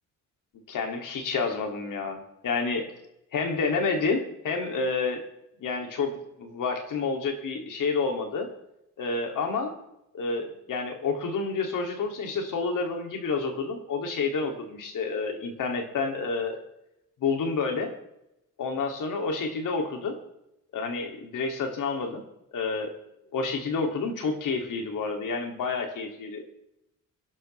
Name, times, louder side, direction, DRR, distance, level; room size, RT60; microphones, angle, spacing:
voice 1, 0.7-2.9 3.3-5.2 5.6-8.5 9.0-9.7 10.1-16.6 17.2-17.9 18.6-20.2 20.7-22.2 22.5-22.9 23.3-26.4, left 4 dB, 75° left, 3 dB, 2.8 m, -29 dB
22.5 x 12.0 x 3.4 m, 0.83 s
wide cardioid pair, 145°, 32 cm